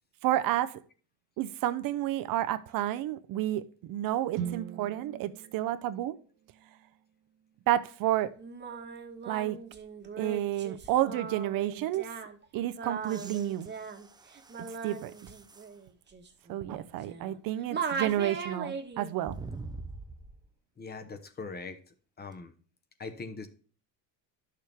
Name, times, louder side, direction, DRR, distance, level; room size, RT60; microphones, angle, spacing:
voice 1, 0.2-0.8 1.4-3.6 3.9-6.2 7.7-8.3 9.3-9.6 10.2-12.1 12.5-13.7 14.8-15.1 16.5-19.4, right 13 dB, 55° right, 0.6 m, -30 dB
sound 1, 4.3-8.4, right 9 dB, 85° right, 1.2 m, -42 dB
Singing, 8.4-17.4 17.7-19.1, right 5 dB, 25° right, 1.3 m, -39 dB
sound 2, 13.0-15.8 16.4-16.5 19.2-20.5 22.3-22.4, right 3 dB, 10° right, 0.5 m, -45 dB
voice 2, 20.8-21.8 22.2-22.5 23.0-23.5, left 4 dB, 25° left, 1.0 m, -41 dB
10.5 x 6.6 x 3.5 m
cardioid pair, 115°, 40 cm